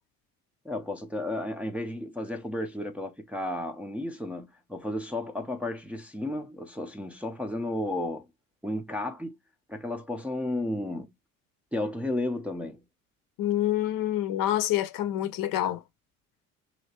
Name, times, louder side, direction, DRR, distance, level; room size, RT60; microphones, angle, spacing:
voice 1, 0.6-8.3 8.6-9.4 9.7-11.1 11.7-12.8, left 1 dB, 5° right, 0.7 m, -33 dB
voice 2, 13.4-15.8, left 12 dB, 55° left, 0.8 m, -27 dB
3.0 x 2.9 x 2.9 m
hypercardioid pair, 65°, 41 cm